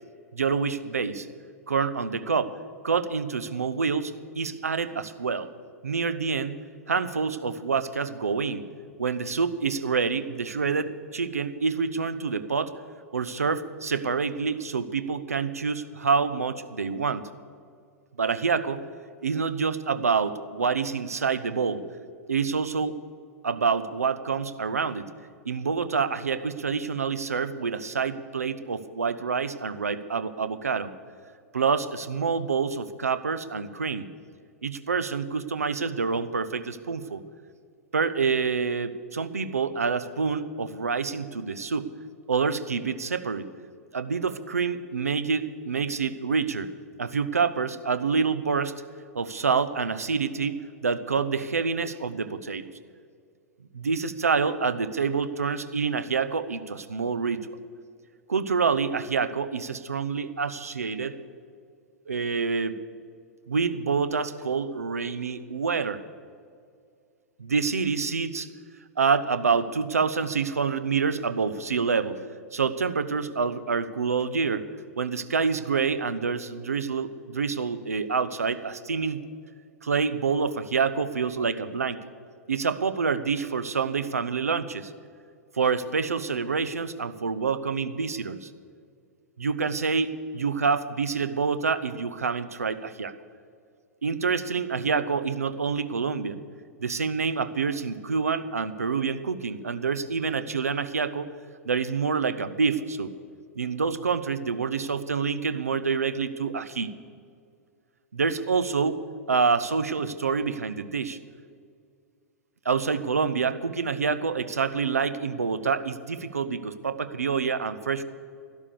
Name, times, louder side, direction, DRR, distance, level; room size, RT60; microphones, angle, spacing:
voice 1, 0.3-1.3 1.7-2.5 2.8-5.5 5.8-6.6 6.9-8.6 9.0-12.7 13.1-17.2 18.2-18.8 19.2-21.8 22.3-23.0 23.4-25.1 25.4-30.9 31.5-34.0 34.6-37.2 37.9-41.9 42.3-43.5 43.9-46.7 47.0-48.7 49.1-52.7 53.7-57.5 58.3-61.2 62.1-62.8 63.5-66.0 67.4-68.5 69.0-72.2 72.5-74.6 75.0-79.2 79.8-82.1 82.5-84.9 85.5-88.5 89.4-93.1 94.0-96.4 96.8-101.3 101.6-103.1 103.6-106.9 108.1-109.0 109.3-111.2 112.6-118.0, right 5 dB, 70° right, 13 dB, 0.7 m, -27 dB
12.5 x 12.0 x 6.8 m, 2.2 s
figure-of-eight pair, 100°, 8 cm